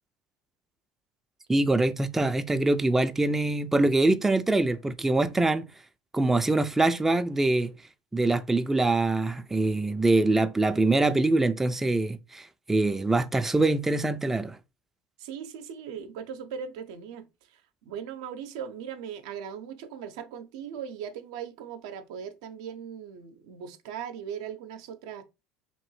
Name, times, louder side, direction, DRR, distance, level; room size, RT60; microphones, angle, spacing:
voice 1, 1.5-5.7 6.1-7.7 8.1-14.6, right 2 dB, 10° right, 0.3 m, -24 dB
voice 2, 15.2-25.2, right 8 dB, 75° right, 0.4 m, -39 dB
2.9 x 2.6 x 3.1 m
hypercardioid pair, 80°, 3 cm